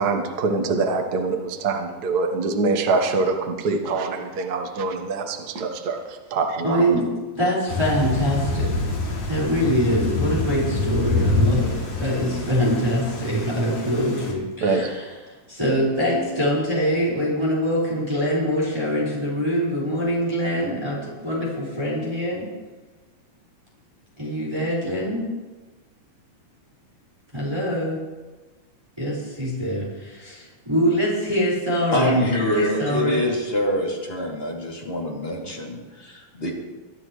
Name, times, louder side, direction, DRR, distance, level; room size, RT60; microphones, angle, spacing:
voice 1, 0.0-6.0 6.3-6.8 14.6-14.9, right 3 dB, 60° right, 4 dB, 1.0 m, -24 dB
voice 2, 6.6-7.1 7.3-8.8 9.3-22.5 24.2-25.3 27.3-28.0 29.0-32.3 32.5-33.2, equal, 10° right, -6 dB, 4.6 m, -24 dB
Thunder / Rain, 7.7-14.3, left 2 dB, 60° left, 3.7 m, -26 dB
voice 3, 31.9-36.5, left 1 dB, 20° left, -3 dB, 2.6 m, -25 dB
23.5 x 12.0 x 3.2 m, 1.2 s
omnidirectional pair, 3.6 m